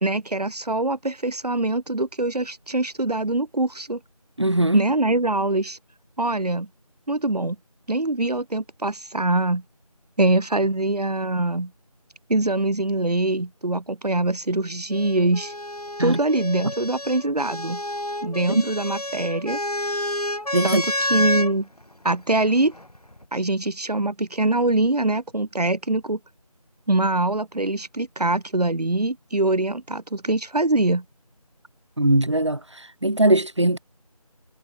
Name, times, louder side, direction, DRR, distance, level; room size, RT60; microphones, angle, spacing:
voice 1, 0.0-4.0 4.7-5.8 6.2-6.7 7.1-7.6 7.9-9.6 10.2-11.7 12.3-15.5 16.0-17.8 18.2-19.6 20.6-21.7 22.0-22.7 23.3-26.2 26.9-31.0, right 2 dB, 85° right, 1.3 m, -23 dB
voice 2, 4.4-4.9 16.0-16.2 18.5-18.6 20.5-20.8 32.0-32.6 33.0-33.8, right 1 dB, 45° right, 1.9 m, -20 dB
sound 1, 14.9-21.5 22.6-23.2, left 1 dB, 75° left, 7.9 m, -29 dB
figure-of-eight pair, 175°, 20 cm